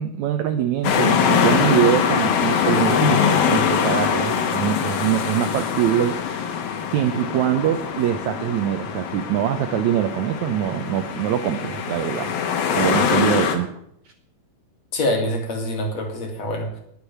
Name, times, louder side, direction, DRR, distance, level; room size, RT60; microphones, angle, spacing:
voice 1, 0.0-6.2 6.9-12.3 12.7-13.7, right 11 dB, 80° right, 8 dB, 1.7 m, -23 dB
sound 1, 0.8-13.6, left 7 dB, 75° left, 3.3 m, -23 dB
voice 2, 14.9-16.8, left 1 dB, 50° left, 3 dB, 3.2 m, -25 dB
19.5 x 6.8 x 7.1 m, 0.71 s
omnidirectional pair, 4.2 m